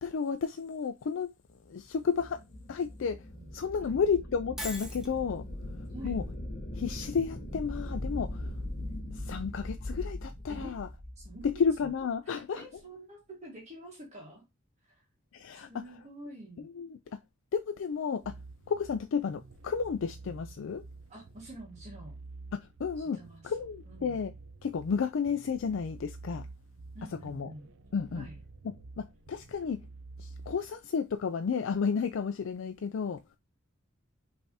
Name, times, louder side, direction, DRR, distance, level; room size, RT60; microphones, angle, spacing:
voice 1, 0.0-1.3 1.7-2.4 2.7-3.2 3.5-5.5 6.0-6.2 6.8-8.5 9.1-10.9 11.4-12.6 15.3-15.8 16.6-17.0 17.5-18.3 18.7-20.8 22.5-23.2 23.4-24.3 24.6-26.5 27.2-27.5 27.9-28.3 29.0-29.8 30.2-33.2, left 6 dB, 70° left, 0.4 m, -32 dB
sound 1, 1.9-12.0, left 1 dB, 45° left, 1.0 m, -40 dB
Shatter, 4.6-5.1, equal, ahead, 1.0 m, -39 dB
voice 2, 5.9-6.3 8.8-9.7 10.5-10.8 11.2-11.9 12.2-14.4 14.9-15.0 15.5-16.7 21.1-22.1 23.0-23.5 23.9-24.2 26.9-27.7 28.1-28.4, right 1 dB, 35° right, 1.6 m, -48 dB
sound 2, 18.2-30.8, right 3 dB, 70° right, 0.6 m, -49 dB
5.6 x 3.3 x 2.7 m
head